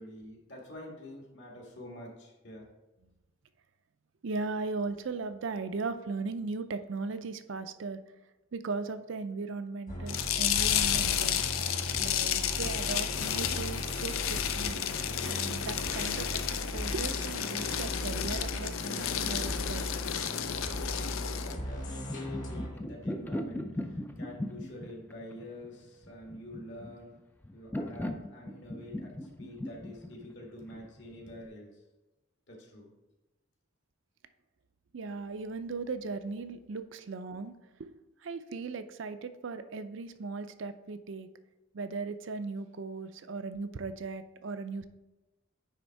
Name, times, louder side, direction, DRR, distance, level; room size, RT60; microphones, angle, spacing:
voice 1, 0.0-2.6 21.4-27.2 27.5-31.8 32.5-32.9, left 1 dB, 60° left, -1 dB, 1.9 m, -47 dB
voice 2, 4.2-8.0 8.5-11.4 12.0-14.8 15.2-16.4 16.7-19.9 34.9-37.5 37.8-37.9 38.2-41.3 41.7-44.8, right 4 dB, 70° right, 10 dB, 0.5 m, -37 dB
sound 1, 9.9-22.7, equal, 40° left, 1.5 m, -38 dB
sound 2, 10.1-21.5, left 9 dB, 90° left, 0.5 m, -32 dB
sound 3, 21.7-31.5, left 1 dB, 10° left, 0.3 m, -39 dB
9.3 x 3.6 x 4.7 m, 1.0 s
head